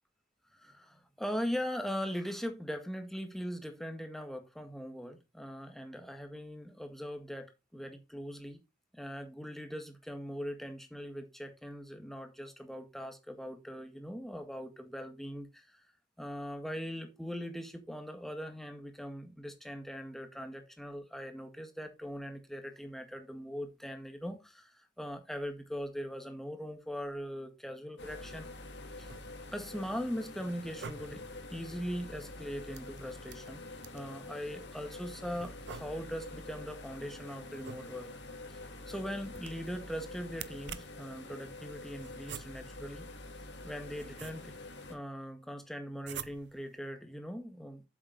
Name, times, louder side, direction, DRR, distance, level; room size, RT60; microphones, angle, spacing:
voice 1, 0.5-8.6 8.9-15.8 16.2-28.5 29.0-29.1 29.5-31.2 31.5-33.6 33.9-38.1 38.5-43.1 43.6-44.5 44.9-47.8, equal, ahead, 6 dB, 1.9 m, -40 dB
sound 1, 28.0-45.0, left 2 dB, 70° left, 2.1 m, -47 dB
sound 2, 28.9-29.6 30.6-31.4 32.7-34.2 35.4-36.3 37.5-38.3 39.3-39.8 40.3-41.1 42.0-42.8 43.6-44.7 46.0-46.7, right 7 dB, 70° right, 0.7 m, -48 dB
8.0 x 7.6 x 4.1 m, 0.26 s
head